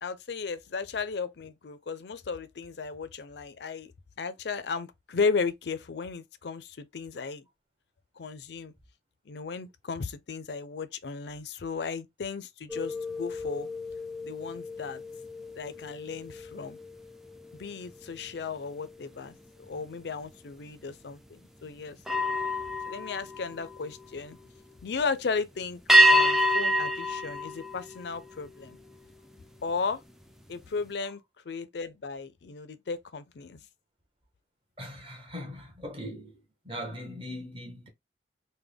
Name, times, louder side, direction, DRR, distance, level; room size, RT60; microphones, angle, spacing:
voice 1, 0.0-3.9 4.2-7.4 8.2-8.7 9.3-13.7 14.2-15.0 15.6-16.8 17.6-19.4 19.7-22.0 22.9-24.4 24.8-25.8 26.1-28.8 29.6-30.0 30.5-31.2 31.5-33.6, left 4 dB, 70° left, 0.5 m, -35 dB
sound 1, 12.7-18.3 18.7-19.0 22.0-24.2 25.9-28.5, equal, ahead, 0.3 m, -27 dB
voice 2, 34.8-36.4 36.6-37.9, equal, 30° right, 1.0 m, -40 dB
3.5 x 2.2 x 3.4 m
head